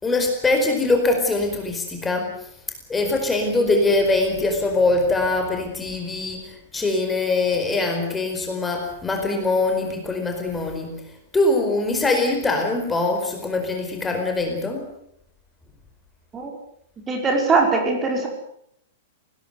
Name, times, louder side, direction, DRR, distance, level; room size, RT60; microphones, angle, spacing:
voice 1, 0.0-2.3 2.9-10.9 11.3-14.8, left 2 dB, 10° left, 3 dB, 4.7 m, -22 dB
voice 2, 17.1-18.3, right 3 dB, 20° right, 2 dB, 5.2 m, -21 dB
20.5 x 19.0 x 8.1 m, 0.71 s
figure-of-eight pair, 100°, 0 cm